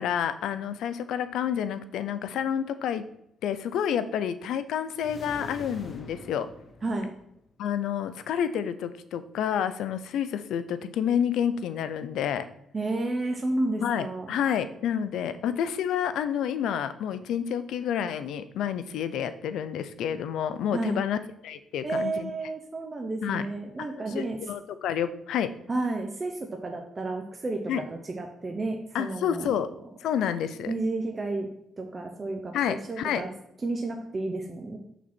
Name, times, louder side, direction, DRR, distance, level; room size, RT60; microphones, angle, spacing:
voice 1, 0.0-3.0 3.4-6.5 7.6-12.5 13.8-22.3 23.2-23.5 24.1-25.5 27.7-27.8 28.9-29.7 30.0-30.7 32.5-33.2, left 9 dB, 80° left, 12 dB, 0.5 m, -29 dB
sound 1, 4.9-7.5, left 2 dB, 35° left, 1.1 m, -45 dB
voice 2, 12.7-14.4 20.7-21.0 21.8-24.4 25.7-27.6 27.9-29.6 30.7-31.5 31.8-33.3 33.6-34.8, right 2 dB, 30° right, 3 dB, 0.8 m, -31 dB
6.1 x 4.0 x 6.0 m, 0.77 s
cardioid pair, 90°, 0 cm